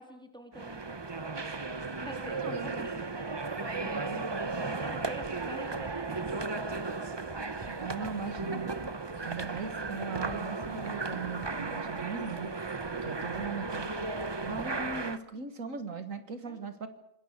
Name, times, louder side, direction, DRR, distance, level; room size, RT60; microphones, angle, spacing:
voice 1, 0.0-7.2 12.8-13.0 16.4-16.6, equal, 5° left, 4 dB, 3.2 m, -48 dB
sound 1, 0.5-15.2, right 3 dB, 25° right, 0.7 m, -35 dB
voice 2, 2.4-2.9 3.8-4.2 5.5-5.8 7.7-8.8 9.2-12.5 13.0-14.1 14.4-16.9, right 5 dB, 75° right, 8 dB, 2.0 m, -39 dB
27.0 x 20.0 x 6.6 m, 0.72 s
omnidirectional pair, 1.4 m